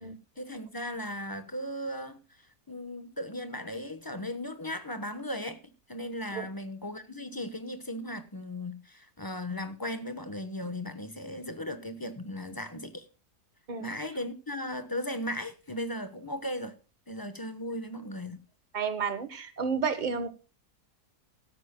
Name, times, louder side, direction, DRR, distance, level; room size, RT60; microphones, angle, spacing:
voice 1, 0.4-2.2 2.7-5.6 5.9-13.1 13.8-16.8 17.1-18.4, left 1 dB, 15° left, 0.9 m, -37 dB
voice 2, 18.7-20.3, right 6 dB, 30° right, 1.3 m, -31 dB
16.5 x 13.5 x 2.2 m
omnidirectional pair, 1.7 m